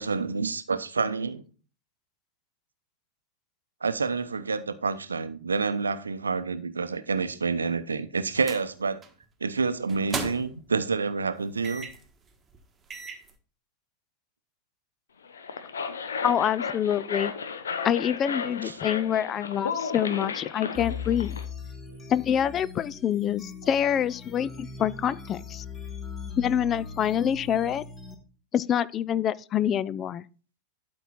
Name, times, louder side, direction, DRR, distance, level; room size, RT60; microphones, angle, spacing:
voice 1, 0.0-1.4 3.8-9.0 9.4-11.9 18.6-18.8, right 4 dB, 75° right, 0.7 m, -28 dB
sound 1, 8.4-8.7 9.0-9.2 9.9-10.7 11.6-12.1 12.5-12.6 12.9-13.3, right 5 dB, 20° right, 1.3 m, -36 dB
sound 2, 15.2-21.4, left 5 dB, 70° left, 0.9 m, -34 dB
voice 2, 16.2-17.3 17.8-21.3 22.1-25.6 26.4-27.8 28.5-30.2, left 9 dB, 30° left, 0.4 m, -26 dB
sound 3, 20.7-28.1, left 6 dB, 15° left, 1.4 m, -39 dB
12.0 x 4.6 x 4.3 m
figure-of-eight pair, 90°, 0 cm